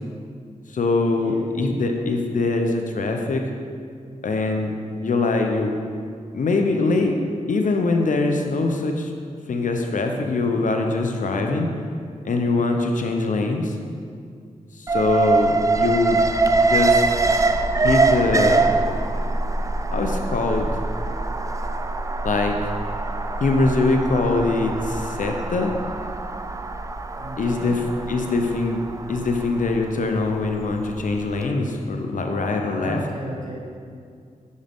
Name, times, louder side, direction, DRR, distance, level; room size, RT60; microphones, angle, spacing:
voice 1, 0.7-3.5 4.2-4.7 5.0-5.8 6.3-7.2 7.5-9.1 9.5-11.7 12.2-13.7 14.8-16.2 16.6-17.1 17.8-18.7 19.9-20.7 22.2-22.6 23.4-25.7 27.4-33.1, left 3 dB, 70° left, 3 dB, 0.7 m, -23 dB
Alarm, 14.9-31.0 31.3-31.4, right 3 dB, 25° right, 0.4 m, -23 dB
voice 2, 27.1-27.8 28.1-28.3 32.6-33.6, right 1 dB, 70° right, -3 dB, 1.5 m, -35 dB
6.4 x 6.3 x 3.6 m, 2.3 s
cardioid pair, 50°, 14 cm